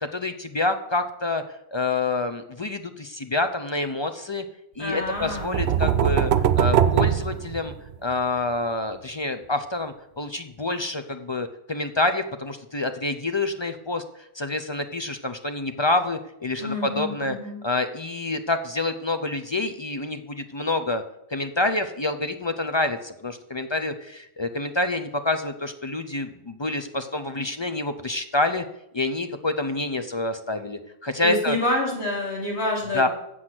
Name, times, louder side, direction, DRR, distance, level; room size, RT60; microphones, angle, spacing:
voice 1, 0.0-4.4 4.8-7.7 8.0-17.3 17.6-21.0 21.3-28.6 28.9-31.6 32.9-33.1, left 2 dB, 35° left, 9 dB, 0.5 m, -27 dB
voice 2, 4.8-6.1 16.6-17.6 31.2-33.1, left 1 dB, 85° left, -3 dB, 3.2 m, -28 dB
sound 1, 5.2-8.1, right 9 dB, 75° right, 0.8 m, -21 dB
8.0 x 7.7 x 5.9 m, 0.81 s
omnidirectional pair, 1.1 m